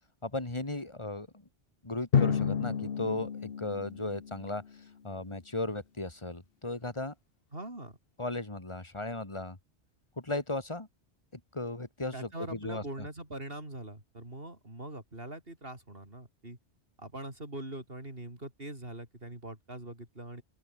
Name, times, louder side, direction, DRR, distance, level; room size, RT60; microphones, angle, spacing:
voice 1, 0.2-1.3 1.8-4.6 5.0-7.1 8.2-9.6 10.2-10.9 11.3-13.1, left 2 dB, 25° left, 2.4 m, -36 dB
Drum, 2.1-4.8, left 7 dB, 60° left, 1.2 m, -30 dB
voice 2, 7.5-8.0 12.1-16.6 17.0-20.4, right 1 dB, 55° right, 5.9 m, -42 dB
open air
omnidirectional pair, 1.1 m